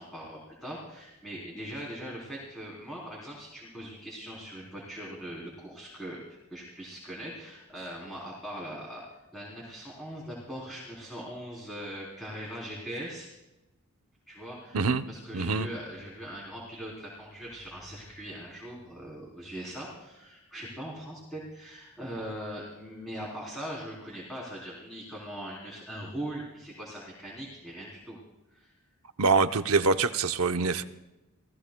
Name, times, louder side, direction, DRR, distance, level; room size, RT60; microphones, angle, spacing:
voice 1, 0.0-6.2 6.5-9.0 9.3-13.3 14.3-28.2 28.5-28.7, equal, ahead, -5 dB, 3.6 m, -41 dB
voice 2, 15.3-15.7 29.2-30.8, right 4 dB, 85° right, 9 dB, 0.8 m, -25 dB
28.5 x 17.0 x 2.3 m, 1.0 s
head